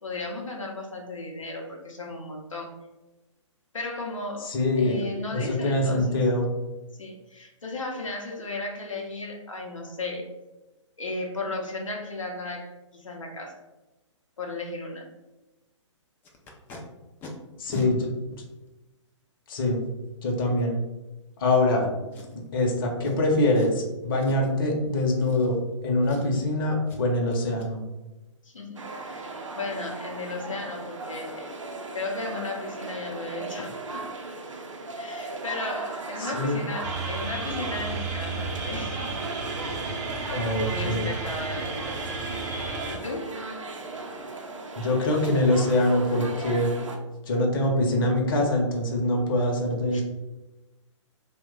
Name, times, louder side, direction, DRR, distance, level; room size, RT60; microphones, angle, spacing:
voice 1, 0.0-2.7 3.7-6.2 7.0-10.3 11.0-13.5 14.4-15.1 28.4-31.5 31.9-34.1 35.0-39.2 39.6-40.1 40.6-42.2 42.9-43.4 49.9-50.0, left 2 dB, 85° left, -1 dB, 0.6 m, -35 dB
voice 2, 4.4-5.0 5.3-6.5 17.6-18.1 19.5-19.8 20.2-20.8 21.4-21.9 22.3-27.8 36.2-36.6 40.3-41.1 44.8-46.7 47.3-50.0, left 1 dB, 45° left, 1 dB, 0.7 m, -24 dB
Packing tape duct tape, 16.2-16.8 17.2-17.3 17.7-17.9 18.7-18.8 22.1-22.5 23.0-23.2 23.5-23.8 24.2-24.6 25.2-25.8 26.0-26.5 26.9-27.0 27.3-27.7 30.7-30.8 31.1-31.3 31.7-31.8 32.1-32.4 32.6-32.7, left 2 dB, 15° left, 0.3 m, -42 dB
sound 1, 28.8-47.0, right 3 dB, 75° right, 0.5 m, -37 dB
sound 2, 36.8-43.0, right 3 dB, 35° right, 0.6 m, -33 dB
2.9 x 2.2 x 3.6 m, 1.0 s
figure-of-eight pair, 125°, 16 cm